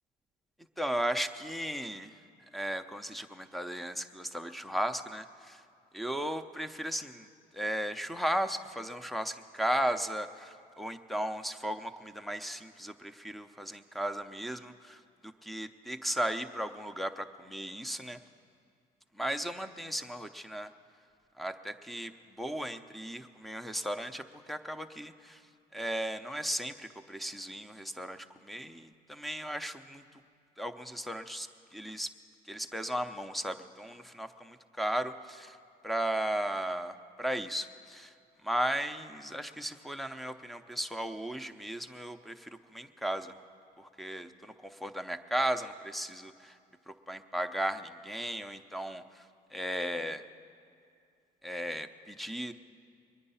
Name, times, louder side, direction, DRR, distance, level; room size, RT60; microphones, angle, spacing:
voice 1, 0.8-2.1 2.5-5.6 5.9-7.3 7.5-18.2 19.2-20.7 21.4-25.4 25.7-30.2 30.6-32.1 32.5-35.6 35.8-38.1 38.4-43.3 43.8-46.6 46.9-49.3 49.5-50.2 51.4-52.5, equal, ahead, 8 dB, 0.6 m, -36 dB
22.0 x 9.8 x 5.6 m, 2.5 s
cardioid pair, 110°, 17 cm